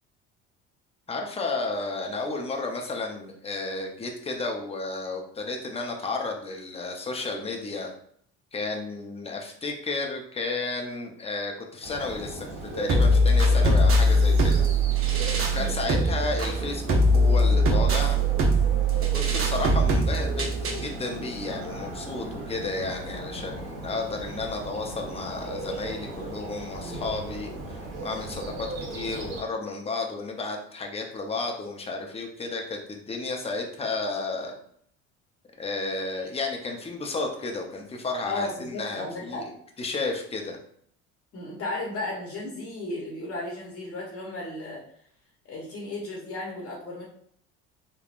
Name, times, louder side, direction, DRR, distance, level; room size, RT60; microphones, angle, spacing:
voice 1, 1.1-7.9 8.5-14.7 15.5-18.2 19.0-34.5 35.6-39.5 39.8-40.6, left 3 dB, 20° left, 2 dB, 0.6 m, -32 dB
Bird, 11.8-29.4, right 2 dB, 80° right, 0.9 m, -37 dB
sound 1, 12.9-20.9, right 1 dB, 40° right, 0.7 m, -21 dB
voice 2, 38.2-39.4 41.3-44.8 45.5-47.0, left 2 dB, 45° left, -3 dB, 1.0 m, -34 dB
3.4 x 2.2 x 2.4 m, 0.64 s
supercardioid pair, 80°, 33 cm